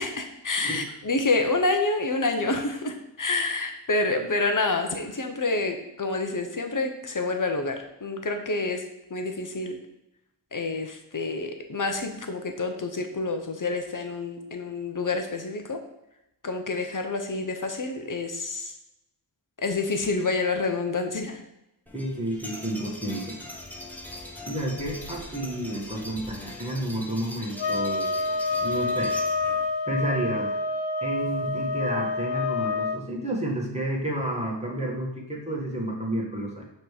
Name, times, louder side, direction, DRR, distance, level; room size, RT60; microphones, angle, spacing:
voice 1, 0.0-7.7 8.0-8.8 9.1-9.8 10.5-15.8 16.4-18.7 19.6-21.4, left 3 dB, 45° left, 5 dB, 0.9 m, -28 dB
sound 1, 21.9-29.7, left 1 dB, 5° left, 1.0 m, -41 dB
voice 2, 21.9-23.4 24.5-28.1 28.6-29.1 29.9-30.5 31.0-36.6, right 1 dB, 15° right, -3 dB, 1.7 m, -30 dB
sound 2, 27.6-33.0, left 3 dB, 70° left, 0.6 m, -28 dB
5.9 x 3.3 x 4.9 m, 0.90 s
wide cardioid pair, 50°, 45 cm